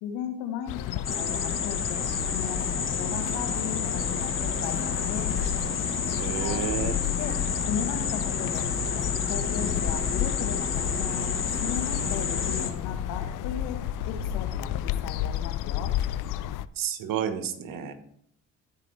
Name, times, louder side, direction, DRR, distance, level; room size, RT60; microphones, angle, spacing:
voice 1, 0.0-5.3 6.4-7.4 7.7-8.7 8.9-15.9, left 7 dB, 80° left, 6 dB, 1.4 m, -37 dB
sound 1, 0.7-16.7, left 12 dB, 60° left, 0.5 m, -32 dB
sound 2, 1.0-12.7, left 5 dB, 35° left, 1.4 m, -30 dB
sound 3, 1.9-15.1, right 2 dB, 20° right, 4.0 m, -43 dB
voice 2, 6.2-6.9 16.8-17.9, right 8 dB, 65° right, 9 dB, 1.3 m, -30 dB
14.5 x 4.9 x 3.3 m, 0.68 s
hypercardioid pair, 60°, 36 cm